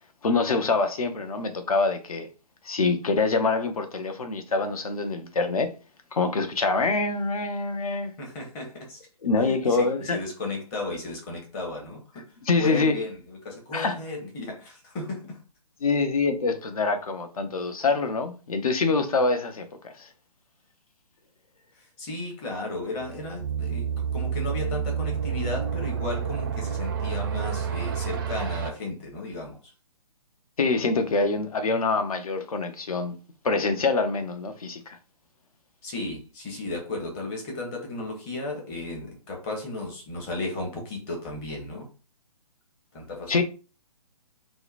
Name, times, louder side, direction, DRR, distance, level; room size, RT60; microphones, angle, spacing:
voice 1, 0.2-2.3 2.6-5.7 6.1-8.1 9.2-10.2 12.4-13.0 13.7-14.0 15.8-20.1 30.6-33.1 33.4-35.0 43.3-43.4, left 3 dB, 65° left, 0.6 m, -25 dB
voice 2, 8.2-9.0 9.5-12.2 12.6-15.4 21.7-29.7 35.8-41.9 42.9-43.4, left 2 dB, 20° left, 0.8 m, -34 dB
sound 1, 23.0-28.7, right 7 dB, 30° right, 0.4 m, -29 dB
2.7 x 2.1 x 2.4 m
figure-of-eight pair, 135°, 20 cm